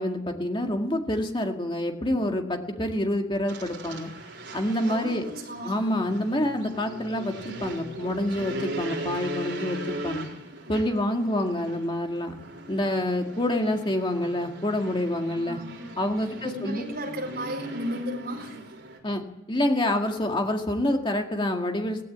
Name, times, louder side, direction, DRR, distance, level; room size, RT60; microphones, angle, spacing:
voice 1, 0.0-4.1 4.5-5.3 5.6-10.3 10.7-12.3 12.7-15.6 16.0-16.8 19.0-19.2 19.5-22.0, left 1 dB, 25° left, 3 dB, 2.0 m, -27 dB
sound 1, 3.5-19.0, right 1 dB, 75° right, 4.2 m, -39 dB
voice 2, 4.9-5.9 15.3-15.8 16.4-18.6, equal, 55° right, 3 dB, 4.4 m, -34 dB
18.0 x 16.5 x 8.7 m, 0.90 s
head